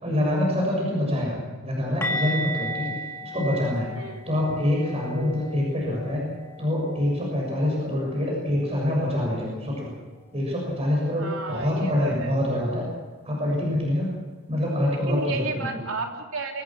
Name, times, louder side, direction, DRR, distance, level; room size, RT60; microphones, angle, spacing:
voice 1, 0.0-2.9 3.2-3.9 4.2-6.2 6.6-9.9 10.3-12.8 13.2-14.1 14.5-15.8, left 1 dB, 30° right, -3 dB, 6.7 m, -25 dB
sound 1, 2.0-8.3 8.6-8.8 12.0-12.1, right 1 dB, 10° left, 2.2 m, -35 dB
voice 2, 3.9-4.3 5.6-5.9 11.1-12.3 15.1-16.6, right 3 dB, 80° right, 2 dB, 3.3 m, -33 dB
24.0 x 17.0 x 7.3 m, 1.4 s
head